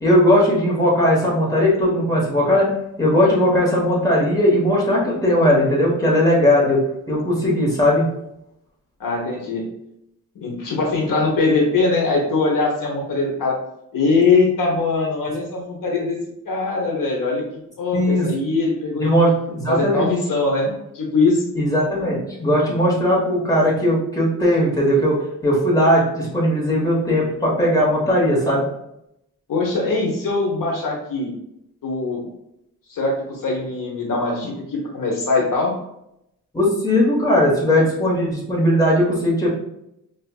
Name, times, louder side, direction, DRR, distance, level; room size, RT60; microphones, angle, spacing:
voice 1, 0.0-2.7 3.0-6.8 7.1-8.0 17.9-18.3 19.0-20.0 21.5-25.2 25.4-28.6 36.5-39.5, equal, 10° left, -6 dB, 1.1 m, -18 dB
voice 2, 9.0-9.6 10.3-13.6 13.9-16.2 16.4-17.4 17.8-19.2 19.7-21.5 29.5-31.3 31.8-32.2 32.9-35.7, left 3 dB, 70° left, -2 dB, 0.9 m, -21 dB
4.5 x 2.4 x 2.3 m, 0.81 s
wide cardioid pair, 130°, 34 cm